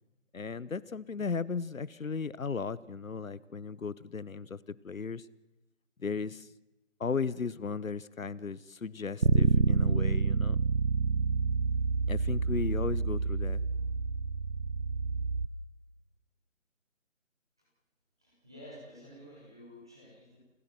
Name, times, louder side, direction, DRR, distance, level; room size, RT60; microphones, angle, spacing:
voice 1, 0.3-5.3 6.0-6.5 7.0-10.6 12.1-13.6, left 5 dB, 80° left, 20 dB, 0.9 m, -36 dB
Bass guitar, 9.2-15.5, right 4 dB, 70° right, 1.2 m, -28 dB
voice 2, 18.2-20.4, equal, 5° right, -5 dB, 1.0 m, -51 dB
28.0 x 13.5 x 7.7 m, 0.97 s
figure-of-eight pair, 160°, 40 cm